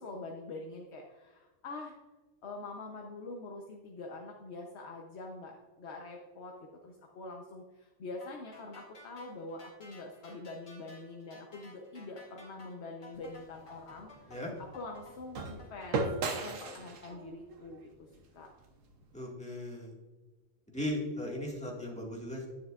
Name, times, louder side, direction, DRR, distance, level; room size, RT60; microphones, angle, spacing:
voice 1, 0.0-1.9 2.4-6.6 6.8-14.4 14.7-18.1 18.3-18.5, left 2 dB, 60° left, 1 dB, 1.2 m, -45 dB
sound 1, 8.2-16.8, left 2 dB, 90° left, 2.5 m, -55 dB
sound 2, 13.1-19.3, right 3 dB, 85° right, 1.4 m, -39 dB
voice 2, 19.1-19.9 20.7-22.5, left 1 dB, 5° left, -2 dB, 1.9 m, -37 dB
11.0 x 9.5 x 2.5 m, 1.2 s
omnidirectional pair, 1.3 m